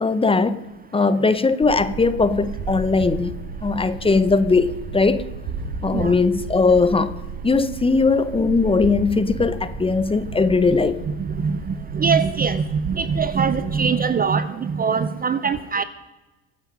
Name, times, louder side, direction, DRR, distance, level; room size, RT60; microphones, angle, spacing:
voice 1, 0.0-0.6 0.9-3.3 3.6-5.2 5.8-7.1 7.4-11.0, left 4 dB, 15° left, 0.7 m, -19 dB
sound 1, 1.6-13.8, right 4 dB, 55° right, 3.0 m, -33 dB
voice 2, 11.9-15.8, right 6 dB, 20° right, 0.5 m, -22 dB
23.5 x 9.1 x 5.2 m
supercardioid pair, 105°, 42 cm